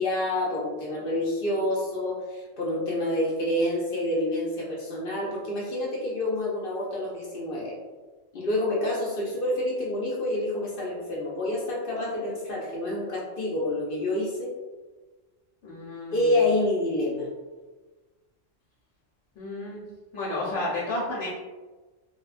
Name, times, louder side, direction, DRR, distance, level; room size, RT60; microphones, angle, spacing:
voice 1, 0.0-7.7 8.3-14.5 16.1-17.3, left 1 dB, 60° left, -3 dB, 0.6 m, -28 dB
voice 2, 15.6-16.3 19.4-19.8 20.1-21.3, left 2 dB, 85° left, -5 dB, 1.0 m, -31 dB
2.9 x 2.2 x 2.4 m, 1.3 s
omnidirectional pair, 1.3 m